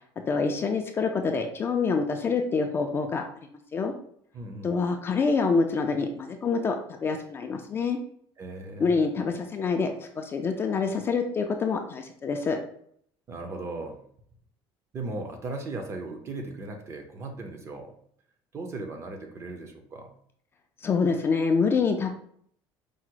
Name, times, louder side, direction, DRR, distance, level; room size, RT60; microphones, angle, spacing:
voice 1, 0.3-3.2 3.7-3.9 4.6-8.0 8.8-12.6 20.8-22.1, left 4 dB, 25° left, 3 dB, 0.3 m, -26 dB
voice 2, 4.3-4.8 8.4-8.9 13.3-14.0 14.9-17.9 18.5-20.1, right 2 dB, 30° right, 4 dB, 0.6 m, -37 dB
4.8 x 2.0 x 4.4 m, 0.64 s
cardioid pair, 160°, 10 cm